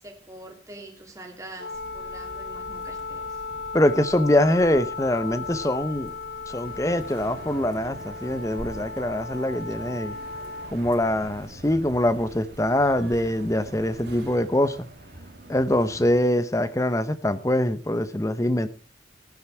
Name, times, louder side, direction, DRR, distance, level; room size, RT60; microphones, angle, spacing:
voice 1, 0.0-3.4, right 1 dB, 15° right, 1 dB, 2.6 m, -44 dB
Wind instrument woodwind instrument, 1.6-10.8, left 4 dB, 80° left, 2.2 m, -36 dB
sound 1, 1.7-14.4, right 1 dB, 75° right, 3.3 m, -47 dB
voice 2, 3.7-6.1 6.5-10.2 10.7-14.9 15.5-18.7, left 1 dB, 15° left, 13 dB, 0.8 m, -23 dB
sound 2, 6.6-16.2, right 1 dB, 60° right, 2.1 m, -45 dB
15.5 x 9.5 x 4.4 m, 0.36 s
head